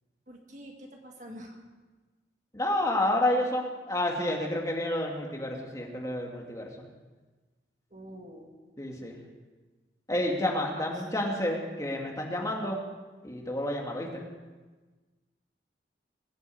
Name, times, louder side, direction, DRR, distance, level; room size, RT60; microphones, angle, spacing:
voice 1, 0.3-1.5 7.9-8.5, equal, 45° right, 2 dB, 1.8 m, -46 dB
voice 2, 2.5-6.7 8.8-9.2 10.1-12.8 13.2-14.2, left 1 dB, 20° left, 0 dB, 2.3 m, -30 dB
21.5 x 8.2 x 7.9 m, 1.3 s
head